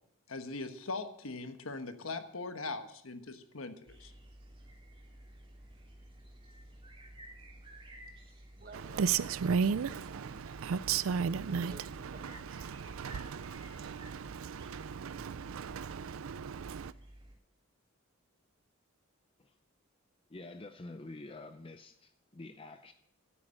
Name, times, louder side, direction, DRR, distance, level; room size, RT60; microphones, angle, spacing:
voice 1, 0.3-4.1, left 3 dB, 75° left, 1.2 m, -41 dB
sound 1, 3.9-17.3, right 1 dB, 25° right, 3.2 m, -53 dB
voice 2, 8.6-10.9 11.4-12.6, right 3 dB, 45° right, 1.4 m, -53 dB
Rain, 8.7-16.9, right 6 dB, 75° right, 0.4 m, -35 dB
voice 3, 20.3-22.9, left 2 dB, 25° left, 0.5 m, -48 dB
12.5 x 9.3 x 6.4 m
head